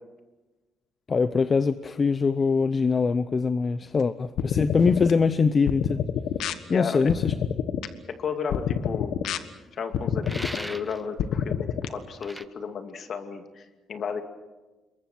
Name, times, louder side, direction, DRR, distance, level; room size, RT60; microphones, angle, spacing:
voice 1, 1.1-6.0 6.7-7.3, left 5 dB, 30° left, 13 dB, 0.7 m, -23 dB
sound 1, 4.4-5.1 5.7-6.5 7.1-7.9 8.5-9.4 9.9-10.6 11.2-11.9, left 8 dB, 80° left, 1.4 m, -28 dB
sound 2, 4.8-5.5, right 4 dB, 70° right, 6.2 m, -53 dB
voice 2, 6.7-7.0 8.2-9.2 9.7-14.2, left 6 dB, 50° left, 7 dB, 2.4 m, -33 dB
sound 3, 10.2-11.1 12.2-12.5, equal, 5° right, 0.8 m, -37 dB
27.5 x 22.5 x 6.1 m, 1.2 s
cardioid pair, 120°, 0 cm